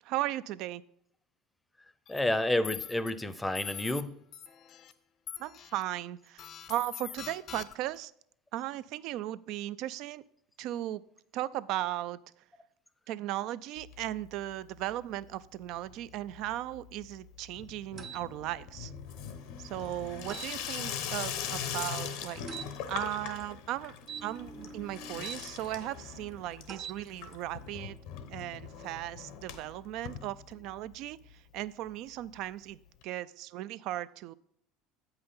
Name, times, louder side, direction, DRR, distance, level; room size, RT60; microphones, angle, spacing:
voice 1, 0.0-0.8 5.4-8.1 8.5-10.2 10.6-11.0 11.3-12.2 13.1-18.9 19.6-22.4 22.9-23.9 24.2-28.0 28.3-34.3, right 14 dB, 65° right, 16 dB, 0.4 m, -37 dB
sound 1, 2.1-2.2 2.6-3.1 3.5-4.0 4.3-4.9 5.3-5.8 6.4-8.0, left 9 dB, 50° left, 0.6 m, -43 dB
voice 2, 2.1-4.2, left 1 dB, 10° left, 14 dB, 0.6 m, -30 dB
Water tap faucet / Sink (filling or washing), 13.8-14.6 14.8-15.4 15.7-30.9 31.3-31.4 31.6-31.7 31.9-32.0 33.0-33.1, left 8 dB, 70° left, 0.9 m, -41 dB
sound 2, 18.0-18.2 20.3-20.5 22.5-22.7 24.0-25.4 26.6-27.0, right 7 dB, 40° right, 0.7 m, -43 dB
7.9 x 5.6 x 5.5 m, 0.71 s
supercardioid pair, 95°, 0 cm